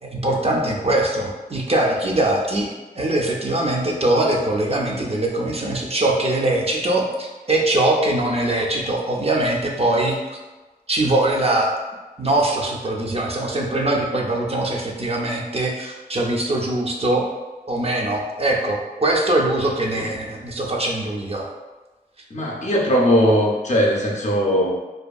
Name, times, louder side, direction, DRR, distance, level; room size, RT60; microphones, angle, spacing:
voice 1, 0.0-2.7 2.9-10.4 10.9-11.7 12.2-17.3 17.7-21.5, right 1 dB, 35° right, -1 dB, 0.4 m, -22 dB
voice 2, 22.3-24.7, equal, 45° left, -1 dB, 0.4 m, -19 dB
2.6 x 2.2 x 2.3 m, 1.2 s
wide cardioid pair, 90°, 17 cm